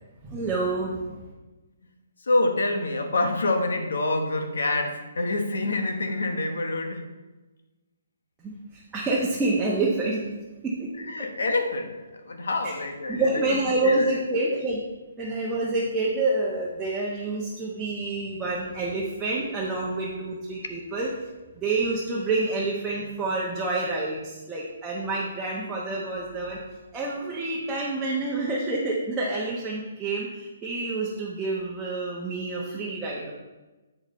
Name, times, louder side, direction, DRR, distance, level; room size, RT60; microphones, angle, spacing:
voice 1, 0.2-1.3 8.4-10.2 10.6-10.9 12.6-12.7 13.1-14.8 15.2-21.1 21.5-26.6 26.9-33.3, right 2 dB, 10° right, -6 dB, 1.0 m, -28 dB
voice 2, 2.2-7.1 11.0-14.2, left 2 dB, 80° left, 5 dB, 1.1 m, -27 dB
7.7 x 6.4 x 3.1 m, 1.2 s
hypercardioid pair, 150°, 0 cm